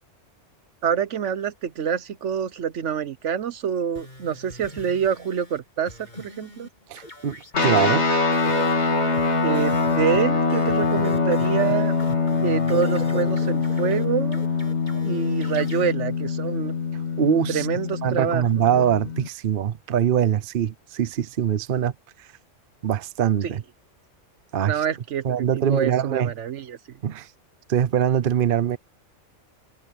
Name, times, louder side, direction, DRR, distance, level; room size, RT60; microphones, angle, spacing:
voice 1, 0.8-6.7 9.4-11.9 12.4-14.4 15.0-16.7 17.5-18.4 23.4-23.5 24.7-26.8, right 8 dB, 70° right, 1.2 m, -26 dB
sound 1, 3.9-5.6 5.9-6.7 6.9-7.9 8.3-15.9, left 1 dB, 35° left, 7.8 m, -42 dB
voice 2, 6.9-7.4 7.6-8.1 17.2-17.7 18.0-21.9 22.2-22.3 22.8-23.6 24.5-24.8 25.2-26.3 27.0-27.3 27.7-28.8, right 9 dB, 50° right, 0.8 m, -23 dB
sound 2, 7.5-19.3, left 4 dB, 60° left, 2.8 m, -23 dB
omnidirectional pair, 1.3 m